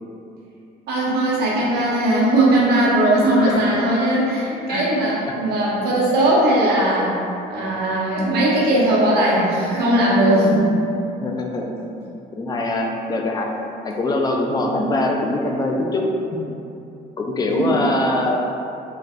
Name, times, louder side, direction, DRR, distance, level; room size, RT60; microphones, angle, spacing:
voice 1, 0.9-7.1 7.5-10.7 17.6-17.7, right 1 dB, 70° right, -6 dB, 0.9 m, -18 dB
voice 2, 11.2-13.5 13.8-16.0 17.2-18.4, left 2 dB, 25° left, 1 dB, 0.4 m, -23 dB
3.2 x 2.8 x 2.5 m, 2.7 s
cardioid pair, 110°, 17 cm